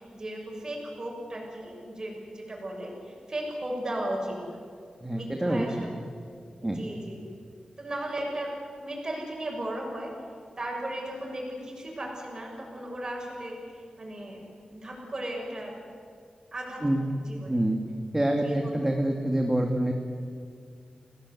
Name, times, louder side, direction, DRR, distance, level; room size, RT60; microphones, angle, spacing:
voice 1, 0.0-4.6 5.1-5.9 6.6-7.2 7.8-8.5 8.8-10.1 10.6-14.4 14.7-15.7 16.5-16.8 17.3-17.6 18.4-18.7, right 1 dB, 30° right, -1 dB, 6.8 m, -36 dB
voice 2, 5.0-5.9 6.6-6.9 16.8-17.0 17.5-17.8 18.1-19.9, right 1 dB, 15° right, 2 dB, 1.9 m, -26 dB
29.0 x 18.5 x 8.4 m, 2.2 s
wide cardioid pair, 140°, 2 cm